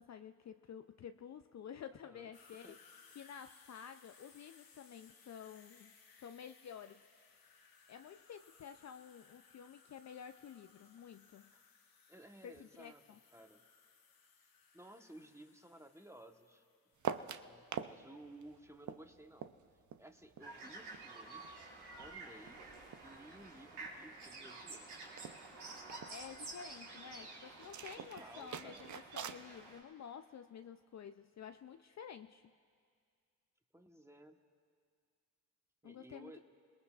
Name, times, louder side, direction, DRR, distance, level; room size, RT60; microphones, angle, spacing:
voice 1, 0.0-5.9 6.2-7.0 7.9-11.5 12.4-13.2 26.1-32.4 35.8-36.4, left 8 dB, 45° left, 9 dB, 0.5 m, -51 dB
voice 2, 1.9-2.3 2.6-2.8 12.1-13.0 13.3-13.6 14.4-14.5 14.7-16.7 17.1-19.5 20.0-21.4 22.0-22.6 23.0-24.9 28.0-29.0 33.7-34.4 35.8-36.4, right 1 dB, 5° right, 5 dB, 1.2 m, -56 dB
sound 1, 2.3-17.2, left 5 dB, 60° left, 1.4 m, -64 dB
sound 2, 17.0-18.0 18.2-21.1 21.4-23.2 23.4-23.9 24.3-24.4 24.5-24.8 25.1-26.1 27.6-29.4, right 8 dB, 50° right, 0.6 m, -45 dB
sound 3, 20.4-29.8, right 3 dB, 80° right, 2.4 m, -51 dB
27.0 x 19.0 x 2.4 m, 2.1 s
supercardioid pair, 50°, 39 cm